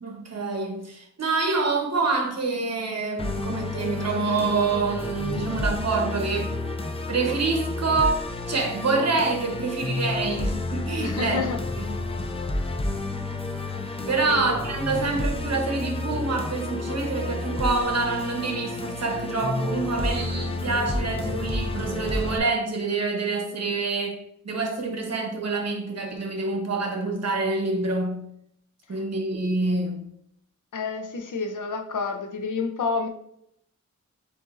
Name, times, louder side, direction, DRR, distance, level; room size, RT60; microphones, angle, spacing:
voice 1, 0.0-6.5 7.1-8.2 8.5-11.4 11.8-12.0 14.1-24.2 24.4-28.2 28.9-30.0, right 3 dB, 55° right, 1.0 m, -26 dB
Musical instrument, 3.2-22.4, left 2 dB, 20° left, 0.4 m, -30 dB
voice 2, 11.0-11.6 14.3-14.6 28.9-29.0 30.7-33.1, left 4 dB, 85° left, 0.7 m, -29 dB
7.7 x 2.8 x 2.5 m
wide cardioid pair, 100°, 30 cm